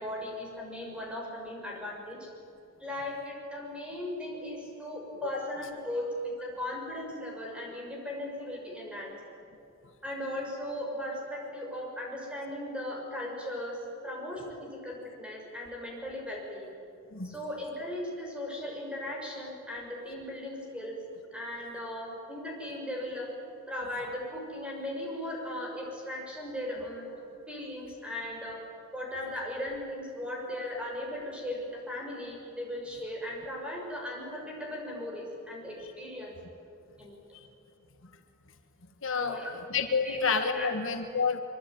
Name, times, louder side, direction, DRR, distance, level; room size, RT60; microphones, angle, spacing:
voice 1, 0.0-2.3 2.8-6.1 6.4-9.1 10.0-13.8 14.0-16.7 17.2-21.0 21.3-23.3 23.7-28.6 28.9-36.3 37.0-37.2 39.2-39.5 40.0-40.2 40.5-40.7, left 1 dB, 5° right, -1 dB, 6.3 m, -37 dB
voice 2, 39.0-39.4 39.7-41.4, left 5 dB, 60° left, 5 dB, 1.7 m, -29 dB
24.5 x 23.5 x 9.3 m, 2.8 s
head